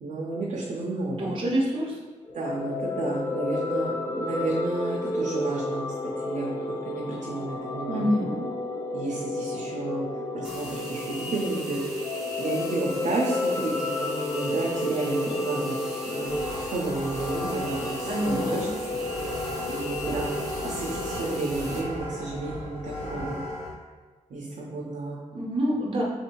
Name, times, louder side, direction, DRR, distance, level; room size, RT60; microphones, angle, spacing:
voice 1, 0.0-1.3 2.3-6.6 6.8-8.2 8.9-10.1 10.3-11.8 12.4-15.8 16.0-18.7 19.7-20.3 20.6-23.4 24.3-25.2, right 2 dB, 70° right, -3 dB, 0.6 m, -31 dB
voice 2, 1.2-2.0 7.9-8.5 9.5-9.6 18.1-18.7 25.3-26.0, equal, 40° right, -4 dB, 0.8 m, -27 dB
sound 1, 2.2-21.6, left 2 dB, 20° left, 0.4 m, -32 dB
sound 2, 10.4-21.8, equal, ahead, 0.9 m, -40 dB
sound 3, 16.3-23.7, left 1 dB, 55° left, 1.1 m, -36 dB
3.4 x 2.6 x 4.4 m, 1.3 s
wide cardioid pair, 180°, 13 cm